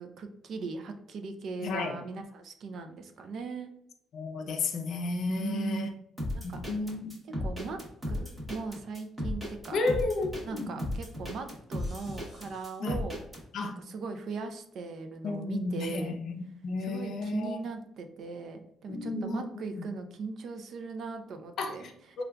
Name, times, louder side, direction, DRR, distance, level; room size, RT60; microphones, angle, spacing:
voice 1, 0.0-3.7 5.3-5.9 6.3-6.6 7.4-7.8 8.1-9.9 10.4-13.2 13.6-16.2 16.8-22.2, right 4 dB, 50° right, 0.4 m, -39 dB
voice 2, 1.6-2.0 4.1-5.9 6.4-7.1 9.7-10.7 12.8-13.0 13.5-13.8 15.2-16.3 16.6-17.6 18.9-19.4 19.7-19.8 21.6-21.7 22.2-22.3, left 3 dB, 55° left, 0.5 m, -32 dB
sound 1, 6.2-13.4, left 1 dB, 10° right, 0.9 m, -35 dB
5.0 x 2.3 x 2.2 m
cardioid pair, 175°, 0 cm